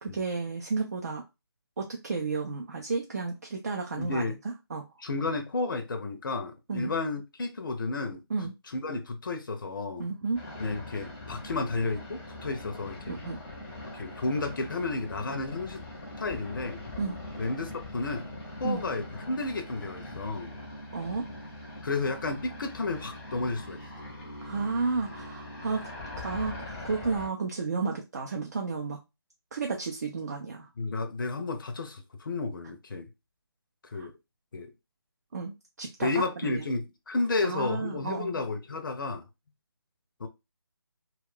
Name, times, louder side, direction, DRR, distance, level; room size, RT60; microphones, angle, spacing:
voice 1, 0.0-1.2 1.8-4.9 6.7-6.9 8.3-8.5 10.0-10.4 13.1-13.4 17.0-17.2 18.6-18.8 20.9-21.3 24.4-25.9 26.2-26.5 26.8-29.0 29.5-30.7 33.9-34.1 35.3-36.1 36.4-36.6 37.4-38.4, right 4 dB, 40° right, 0.4 m, -32 dB
voice 2, 4.0-4.4 5.0-8.2 8.7-10.1 10.6-13.2 13.9-15.8 16.2-16.8 17.4-18.3 18.6-20.6 21.8-23.8 30.8-33.1 33.8-34.1 34.5-34.7 36.0-39.3 40.2-40.3, left 3 dB, 55° left, 0.5 m, -32 dB
sound 1, 10.3-27.3, left 2 dB, 10° left, 0.6 m, -42 dB
2.3 x 2.2 x 3.5 m
figure-of-eight pair, 155°, 13 cm